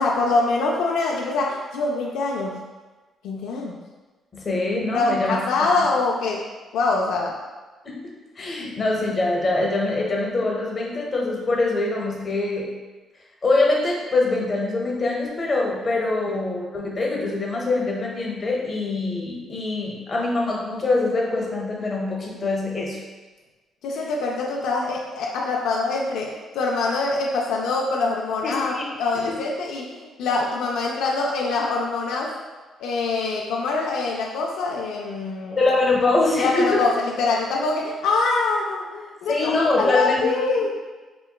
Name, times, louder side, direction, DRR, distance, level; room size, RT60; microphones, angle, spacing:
voice 1, 0.0-2.6 3.2-3.8 4.9-6.4 6.7-7.4 16.3-16.4 23.8-32.3 32.8-35.6 36.4-40.7, left 3 dB, 85° left, -2 dB, 0.3 m, -24 dB
voice 2, 4.3-5.3 7.8-8.0 8.4-12.7 13.4-23.0 28.4-28.8 29.1-29.3 35.6-36.8 39.3-40.2, left 2 dB, 35° left, -2 dB, 0.7 m, -23 dB
3.8 x 2.2 x 2.2 m, 1.2 s
cardioid pair, 90°, 0 cm